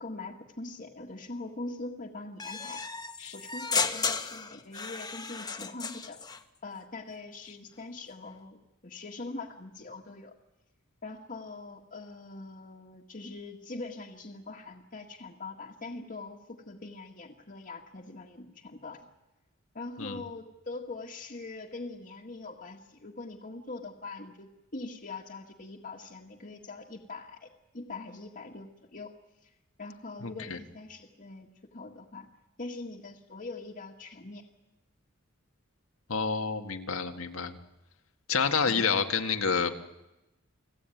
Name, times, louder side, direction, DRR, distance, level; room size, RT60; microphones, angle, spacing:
voice 1, 0.0-2.8 3.3-6.2 6.6-10.3 11.0-19.1 19.7-27.5 27.7-29.1 29.4-29.5 29.8-32.3 32.6-34.4, left 3 dB, 40° left, -1 dB, 1.8 m, -42 dB
sound 1, 2.4-6.4, left 5 dB, 20° left, 1.2 m, -34 dB
voice 2, 30.2-30.6 36.1-37.6 38.3-39.7, left 5 dB, 85° left, 5 dB, 1.8 m, -29 dB
30.0 x 20.0 x 9.2 m, 1.0 s
head